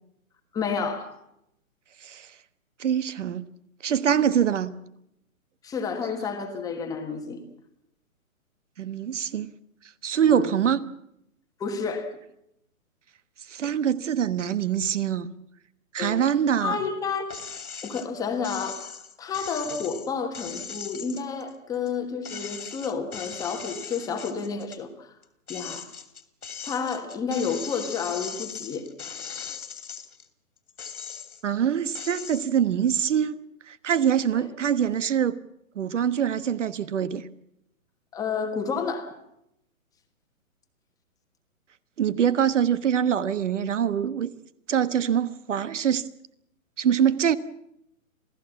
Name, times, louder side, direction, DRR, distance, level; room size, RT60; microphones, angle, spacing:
voice 1, 0.5-1.2 5.6-7.4 10.3-10.5 11.6-12.2 16.0-16.2 16.6-17.3 17.8-25.1 25.5-25.9 26.6-28.9 34.4-34.5 38.1-39.2, left 5 dB, 10° left, 1.3 m, -30 dB
voice 2, 2.8-3.5 3.8-4.7 8.8-9.5 10.0-10.9 13.5-15.3 15.9-16.8 31.4-33.4 33.7-35.4 35.7-37.3 42.0-44.3 44.7-46.1 46.8-47.4, right 8 dB, 55° right, 1.3 m, -24 dB
sound 1, 17.3-18.1 18.4-21.9 22.2-24.8 25.2-30.3 30.7-31.5 31.9-32.5, left 6 dB, 85° left, 3.1 m, -39 dB
27.5 x 17.0 x 7.1 m
hypercardioid pair, 155°, 43 cm